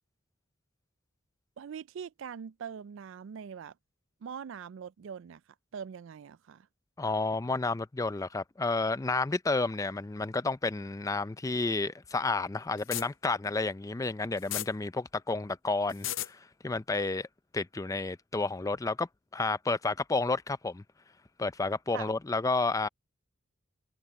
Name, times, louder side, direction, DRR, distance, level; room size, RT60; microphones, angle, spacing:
voice 1, 1.6-3.7 4.2-5.4 5.7-6.7 21.9-22.1, right 7 dB, 65° right, 0.3 m, -42 dB
voice 2, 7.0-17.3 17.5-19.1 19.3-20.8 21.4-22.9, left 3 dB, 15° left, 0.4 m, -31 dB
sound 1, 12.8-13.0 14.4-14.7 15.9-16.3, left 14 dB, 60° left, 0.6 m, -33 dB
head